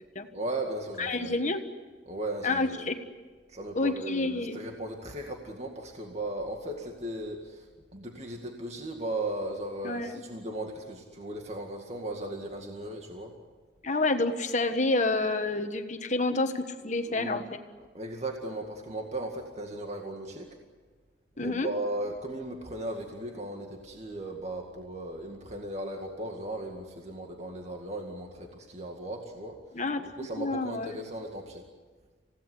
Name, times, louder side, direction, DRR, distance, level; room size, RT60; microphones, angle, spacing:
voice 1, 0.3-1.4 2.1-2.9 3.5-7.7 7.9-13.3 17.1-17.4 17.9-20.5 21.4-29.6 30.2-31.6, right 1 dB, 40° right, 2 dB, 2.1 m, -36 dB
voice 2, 1.0-1.6 2.4-3.0 3.7-4.6 9.8-10.1 13.8-17.4 21.4-21.7 29.7-30.1 30.4-31.0, left 2 dB, 40° left, 7 dB, 1.4 m, -28 dB
28.0 x 17.0 x 9.8 m, 1.4 s
head